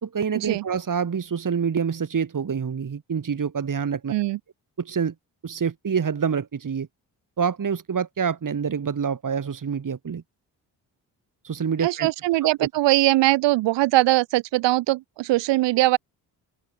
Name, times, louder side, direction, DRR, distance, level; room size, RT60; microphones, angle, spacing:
voice 1, 0.0-4.1 4.8-5.1 5.4-6.9 7.4-10.2 11.4-12.1 12.4-12.7, right 6 dB, 50° right, 3.7 m, -26 dB
voice 2, 11.8-16.0, right 18 dB, 85° right, 1.0 m, -21 dB
open air
supercardioid pair, 60°, 42 cm